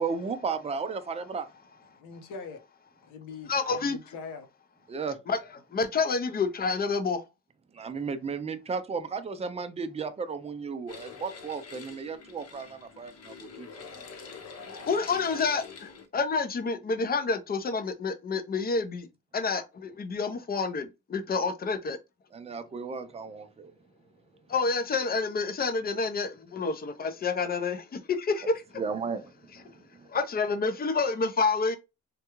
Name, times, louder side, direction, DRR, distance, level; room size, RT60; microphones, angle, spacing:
voice 1, 0.0-1.5 4.9-5.2 7.7-14.0 22.3-23.7 28.8-30.1, right 5 dB, 20° right, 0.5 m, -34 dB
voice 2, 1.9-2.6 3.0-4.5 23.1-23.2, left 5 dB, 85° left, 0.9 m, -42 dB
voice 3, 3.5-4.0 5.3-5.4 5.7-7.3 14.6-19.1 19.3-22.0 24.5-28.6 30.1-31.8, left 4 dB, 30° left, 0.6 m, -28 dB
sound 1, 10.9-16.1, left 5 dB, 55° left, 0.9 m, -45 dB
3.6 x 2.2 x 2.9 m
cardioid pair, 90°, 30 cm